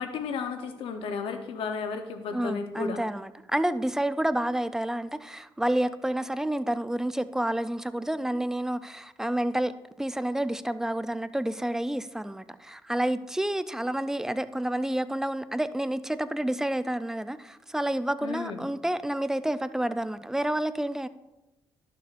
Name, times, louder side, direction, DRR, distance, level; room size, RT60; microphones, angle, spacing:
voice 1, 0.0-3.0 18.2-18.6, left 5 dB, 80° left, 0.9 m, -33 dB
voice 2, 2.3-9.7 10.0-21.1, right 1 dB, 5° right, 0.4 m, -29 dB
11.5 x 6.7 x 2.5 m
cardioid pair, 75°, 9 cm